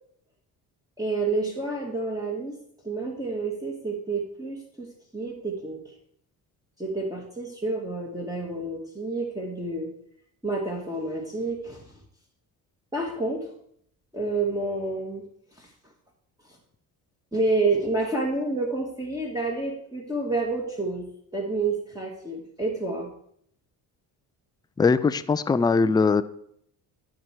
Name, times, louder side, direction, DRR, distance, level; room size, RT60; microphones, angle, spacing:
voice 1, 1.0-2.5 2.8-4.9 5.1-5.8 6.8-9.9 10.4-11.8 12.9-13.5 14.1-15.2 15.6-15.7 17.3-21.0 21.3-23.1, right 3 dB, 10° right, -2 dB, 2.0 m, -29 dB
voice 2, 24.8-26.2, left 4 dB, 10° left, 13 dB, 0.4 m, -21 dB
11.0 x 4.9 x 4.5 m, 0.68 s
supercardioid pair, 70°, 43 cm